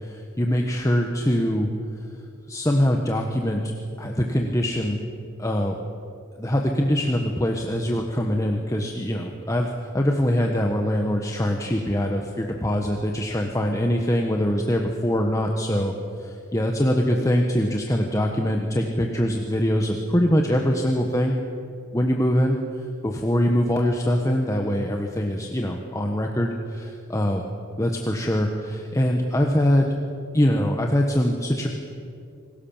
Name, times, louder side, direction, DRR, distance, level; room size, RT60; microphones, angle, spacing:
voice 1, 0.0-1.7 2.5-3.7 4.0-5.0 5.4-5.8 6.4-15.9 16.2-21.4 21.9-22.6 23.0-27.4 27.8-29.9 30.3-31.7, equal, 15° left, 2 dB, 1.4 m, -23 dB
27.5 x 19.0 x 7.4 m, 2.5 s
head